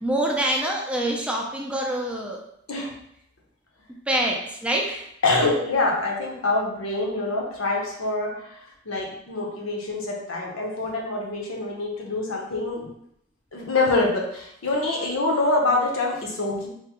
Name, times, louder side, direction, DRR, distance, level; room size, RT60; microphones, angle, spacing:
voice 1, 0.0-2.4 4.1-5.1, right 1 dB, 5° right, -1 dB, 0.4 m, -25 dB
voice 2, 5.2-8.5 8.9-12.9 13.5-16.7, left 2 dB, 75° left, -1 dB, 0.7 m, -25 dB
3.4 x 2.0 x 2.9 m, 0.73 s
head